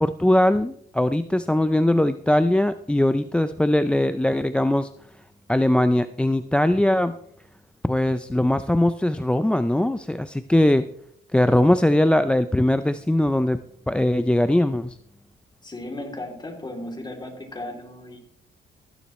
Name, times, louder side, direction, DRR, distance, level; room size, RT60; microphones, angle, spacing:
voice 1, 0.0-4.9 5.5-7.2 7.8-10.9 11.3-13.6 13.9-15.0, left 1 dB, 5° left, 11 dB, 0.4 m, -20 dB
voice 2, 15.6-18.2, left 1 dB, 20° left, 2 dB, 2.9 m, -35 dB
14.5 x 11.0 x 3.1 m, 0.68 s
cardioid pair, 90°, 20 cm